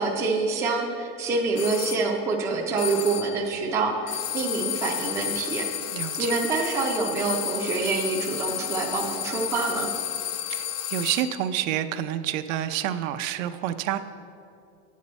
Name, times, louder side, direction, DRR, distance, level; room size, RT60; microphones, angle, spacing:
voice 1, 0.0-5.7 6.2-9.9, right 4 dB, 10° right, -1 dB, 0.3 m, -26 dB
sound 1, 1.6-2.1 2.8-3.4 4.1-11.4, left 11 dB, 80° left, 0.7 m, -32 dB
voice 2, 5.9-6.3 10.5-14.0, right 11 dB, 80° right, 10 dB, 0.7 m, -28 dB
11.0 x 8.4 x 4.2 m, 2.6 s
supercardioid pair, 165°, 39 cm